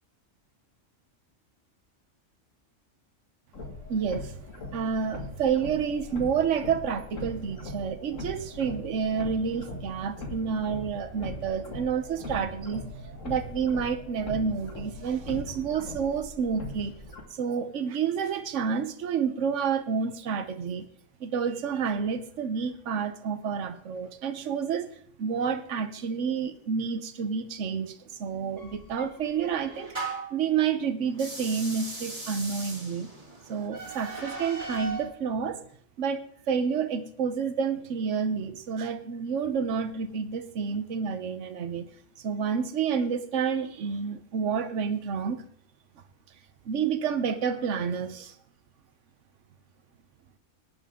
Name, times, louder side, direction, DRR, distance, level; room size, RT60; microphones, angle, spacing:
sound 1, 3.5-17.2, left 2 dB, 70° left, 2.2 m, -40 dB
voice 1, 3.9-4.3 4.7-17.0 17.3-20.9 21.2-24.9 25.2-30.0 30.3-33.1 33.5-35.6 36.0-41.9 42.2-45.4 46.6-48.3, right 6 dB, 65° right, 10 dB, 1.2 m, -29 dB
sound 2, 28.6-30.4 31.1-35.1, right 3 dB, 25° right, 2.8 m, -38 dB
18.0 x 10.5 x 3.7 m, 0.63 s
omnidirectional pair, 1.3 m